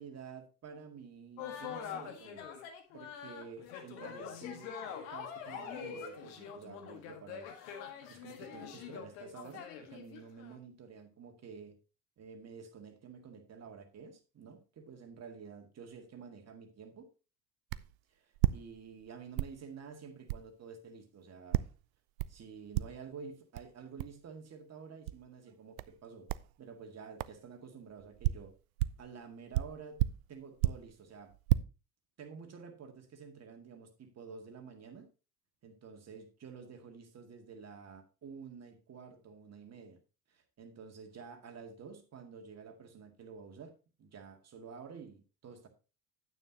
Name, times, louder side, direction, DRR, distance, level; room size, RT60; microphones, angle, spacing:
voice 1, 0.0-2.4 2.9-4.7 5.1-11.7 12.2-17.1 18.5-21.6 22.3-26.3 26.6-28.5 29.0-30.0 30.3-31.3 32.2-35.1 35.6-40.0 40.3-43.7 44.0-45.7, right 6 dB, 35° right, 2.1 m, -50 dB
sound 1, 1.4-10.6, left 8 dB, 65° left, 1.7 m, -44 dB
sound 2, 17.7-17.9 18.3-19.1 19.4-19.6 20.3-20.5 21.5-21.8 22.2-22.4 22.7-23.1 23.6-23.7 24.0-24.2 25.1-25.2 25.8-26.0 26.3-26.5 27.2-27.4 28.0-29.1 29.5-30.9 31.3-31.6, right 16 dB, 65° right, 0.6 m, -32 dB
9.4 x 9.2 x 2.9 m
figure-of-eight pair, 65°, 46 cm